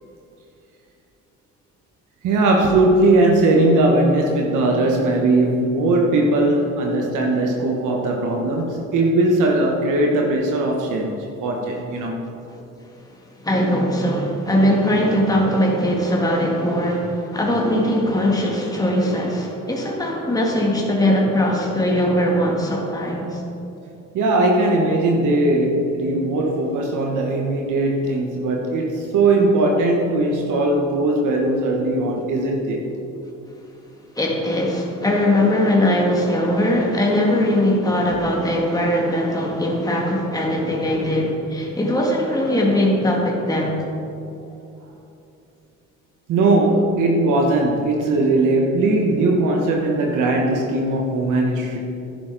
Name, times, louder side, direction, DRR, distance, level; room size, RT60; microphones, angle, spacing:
voice 1, 2.2-12.2 24.1-32.9 46.3-51.8, right 2 dB, 85° right, 1 dB, 1.2 m, -19 dB
voice 2, 13.4-23.4 34.1-43.8, left 1 dB, 10° left, -2 dB, 1.7 m, -20 dB
10.5 x 10.5 x 3.9 m, 2.8 s
cardioid pair, 90°, 30 cm